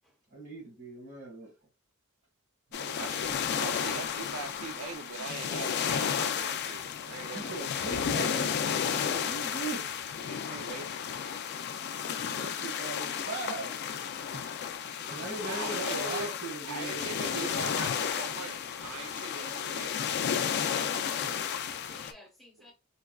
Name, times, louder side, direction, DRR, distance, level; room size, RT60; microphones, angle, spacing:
voice 1, 0.3-1.5 2.7-3.1 7.3-9.9 12.1-14.4 15.1-17.0 17.3-17.9 20.0-20.1, right 3 dB, 55° right, 1.5 m, -40 dB
sound 1, 2.7-22.1, left 7 dB, 50° left, 0.3 m, -33 dB
voice 2, 2.8-7.7 10.2-10.9 15.4-16.3 16.6-20.0 21.4-21.6, right 4 dB, 80° right, 0.5 m, -41 dB
voice 3, 19.3-19.6 20.7-22.7, equal, ahead, 1.0 m, -54 dB
4.0 x 2.3 x 2.3 m
head